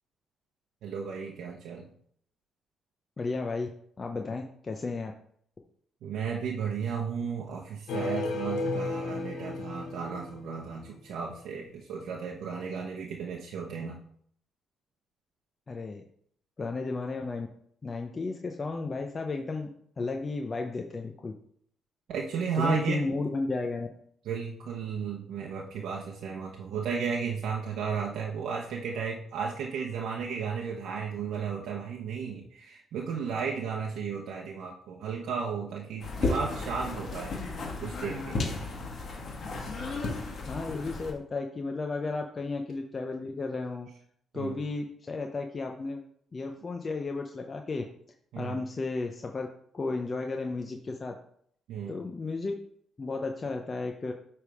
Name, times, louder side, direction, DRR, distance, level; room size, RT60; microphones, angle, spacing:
voice 1, 0.8-1.9 6.0-14.0 22.1-23.3 24.2-37.3 37.8-38.5 44.3-44.6 48.3-48.6 51.7-51.9, right 6 dB, 80° right, -2 dB, 0.9 m, -34 dB
voice 2, 3.2-3.7 4.0-5.1 15.7-16.0 16.6-17.5 17.8-19.7 20.0-21.3 22.5-23.9 40.5-43.9 44.3-46.0 46.3-47.8 48.4-49.5 49.7-51.2 51.9-52.5 53.0-54.1, left 3 dB, 35° left, 3 dB, 0.7 m, -33 dB
sound 1, 7.9-10.9, left 2 dB, 75° left, 1.0 m, -33 dB
sound 2, 36.0-41.1, left 3 dB, 55° left, 1.9 m, -34 dB
8.7 x 3.6 x 4.8 m, 0.65 s
cardioid pair, 90°, 0 cm